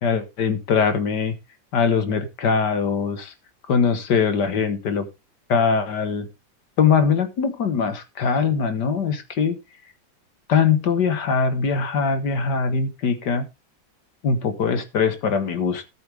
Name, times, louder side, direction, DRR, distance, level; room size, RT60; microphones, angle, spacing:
voice 1, 0.0-1.3 1.7-3.3 3.7-5.1 5.5-6.3 6.8-9.6 10.5-13.4 14.2-15.8, left 6 dB, 70° left, 9 dB, 1.9 m, -22 dB
13.5 x 7.7 x 3.4 m, 0.25 s
omnidirectional pair, 2.0 m